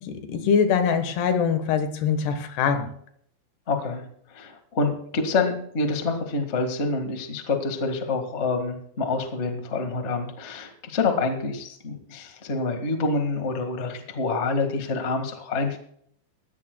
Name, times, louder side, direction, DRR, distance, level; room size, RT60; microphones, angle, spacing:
voice 1, 0.0-2.9, left 6 dB, 85° left, 8 dB, 3.4 m, -23 dB
voice 2, 3.7-4.0 4.3-15.8, left 3 dB, 55° left, 5 dB, 0.7 m, -27 dB
19.5 x 15.0 x 2.3 m, 0.67 s
omnidirectional pair, 4.6 m